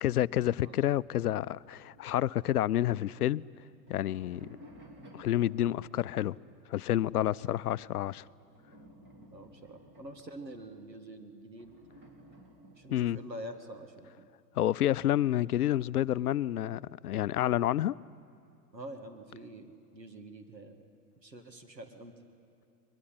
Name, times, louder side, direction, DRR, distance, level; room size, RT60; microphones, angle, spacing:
voice 1, 0.0-3.4 3.9-4.5 5.1-6.4 6.7-8.2 12.9-13.2 14.6-17.9, left 12 dB, 65° left, 0.6 m, -29 dB
sound 1, 1.6-3.1 3.7-6.8 8.3-10.9 11.5-13.5, equal, 20° right, 2.9 m, -55 dB
voice 2, 9.3-11.8 12.8-14.3 18.7-20.8 21.2-22.1, right 1 dB, 90° right, 2.1 m, -46 dB
22.0 x 21.5 x 9.9 m
figure-of-eight pair, 100°, 49 cm